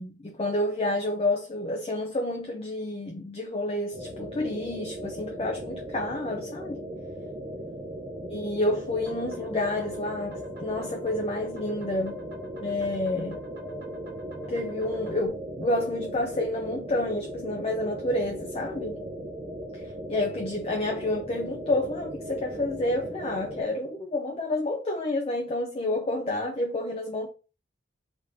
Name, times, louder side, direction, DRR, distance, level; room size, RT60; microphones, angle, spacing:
voice 1, 0.0-6.8 8.3-12.2 12.6-13.4 14.5-19.0 20.1-27.3, left 1 dB, 30° left, 0.5 m, -29 dB
sound 1, 3.9-23.6, equal, 40° right, 0.7 m, -38 dB
sound 2, 9.0-15.3, left 1 dB, 60° right, 1.0 m, -50 dB
3.8 x 3.5 x 2.7 m
head